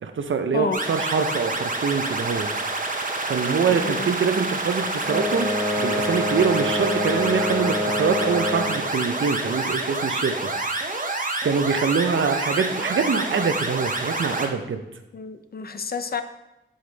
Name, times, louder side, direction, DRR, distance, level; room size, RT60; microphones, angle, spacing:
voice 1, 0.0-2.5 3.3-5.5 5.8-10.5 11.4-14.8, right 5 dB, 80° right, 7 dB, 0.7 m, -24 dB
sound 1, 0.7-14.5, right 2 dB, 45° right, 1.0 m, -28 dB
voice 2, 3.7-4.1 15.1-16.2, left 5 dB, 50° left, 9 dB, 0.6 m, -30 dB
sound 2, 5.0-8.9, equal, 5° right, 1.4 m, -26 dB
7.9 x 5.0 x 4.0 m, 0.96 s
wide cardioid pair, 65°, 20 cm